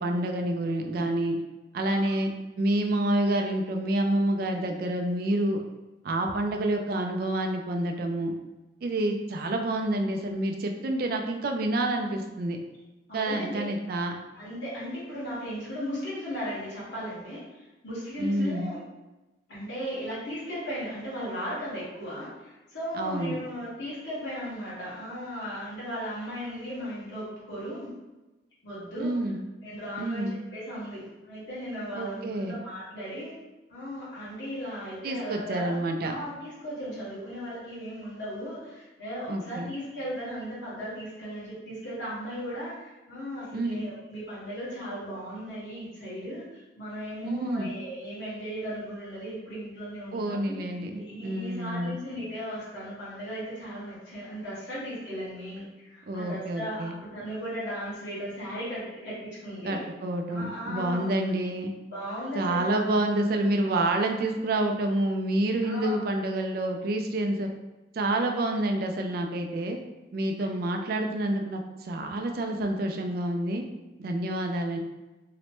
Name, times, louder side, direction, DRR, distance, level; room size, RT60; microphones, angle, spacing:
voice 1, 0.0-1.4 1.7-2.3 2.6-5.6 6.0-8.3 8.8-12.6 13.1-14.1 18.2-18.7 22.9-23.4 29.0-29.4 30.0-30.4 31.9-32.6 35.0-36.1 39.3-39.7 43.5-43.8 47.2-47.7 50.1-52.0 56.1-56.9 59.6-61.7 62.3-67.5 67.9-69.8 70.1-73.6 74.0-74.8, right 1 dB, 50° right, 3 dB, 0.3 m, -28 dB
voice 2, 13.1-13.7 14.3-17.4 17.8-18.8 19.5-27.9 28.6-29.1 29.6-33.3 33.7-35.8 36.0-50.6 50.9-59.8 60.3-61.1 61.9-62.9 65.6-66.0 70.4-70.5, equal, 60° left, -9 dB, 1.4 m, -36 dB
3.1 x 2.1 x 2.9 m, 1.1 s
head